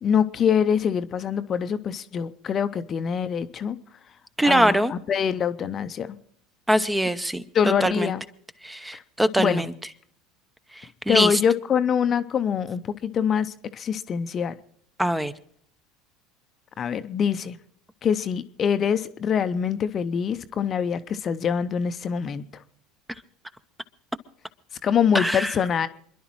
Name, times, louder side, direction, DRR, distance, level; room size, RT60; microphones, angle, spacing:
voice 1, 0.0-3.8 4.4-6.2 7.5-8.2 8.9-9.0 9.4-9.7 11.1-14.5 16.8-17.6 18.0-22.6 24.8-25.9, left 7 dB, 35° left, 0.7 m, -24 dB
voice 2, 4.4-4.9 6.7-7.4 7.8-8.1 8.6-9.7 11.1-11.3 15.0-15.3 25.1-25.5, right 1 dB, 5° right, 0.7 m, -22 dB
28.0 x 11.0 x 3.1 m
figure-of-eight pair, 70°, 0 cm